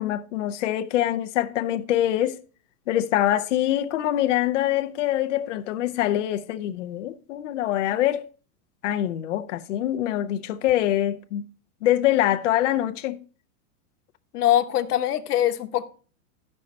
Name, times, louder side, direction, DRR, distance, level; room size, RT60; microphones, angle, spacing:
voice 1, 0.0-2.4 2.9-8.3 8.8-11.5 11.8-13.2, left 12 dB, 55° left, 0.6 m, -24 dB
voice 2, 14.3-15.9, left 12 dB, 85° left, 1.0 m, -22 dB
13.0 x 5.4 x 4.2 m
supercardioid pair, 175°, 45 cm